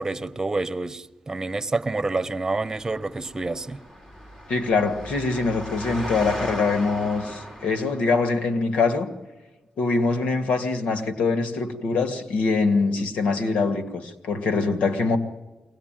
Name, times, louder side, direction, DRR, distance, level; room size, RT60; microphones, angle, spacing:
voice 1, 0.0-3.8 13.0-13.1, right 3 dB, 25° right, 1.1 m, -28 dB
Engine, 2.6-8.3, equal, 35° left, 6.5 m, -37 dB
voice 2, 4.5-9.1 9.8-15.2, left 4 dB, 90° left, 2.1 m, -23 dB
23.0 x 18.0 x 9.1 m
cardioid pair, 70°, 2 cm